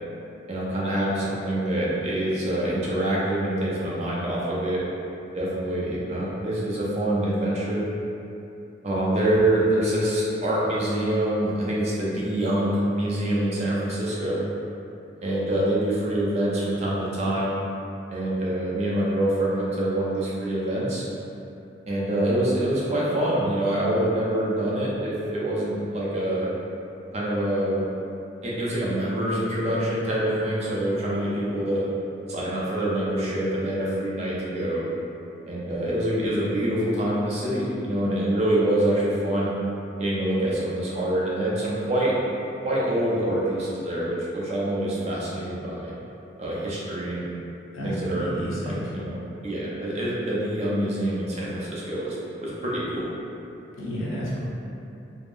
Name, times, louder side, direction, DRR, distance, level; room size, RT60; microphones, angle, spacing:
voice 1, 0.5-4.8 5.3-7.9 8.8-14.4 15.2-17.5 18.1-21.1 21.9-26.5 27.1-27.9 28.4-31.8 32.3-34.9 35.5-39.5 40.0-42.1 42.6-45.9 46.4-47.3 47.8-48.3 48.7-52.2 52.4-53.1, right 1 dB, 35° right, -7 dB, 0.5 m, -25 dB
voice 2, 47.7-48.8 53.8-54.4, equal, 85° left, -7 dB, 0.8 m, -31 dB
3.5 x 2.0 x 2.5 m, 2.8 s
head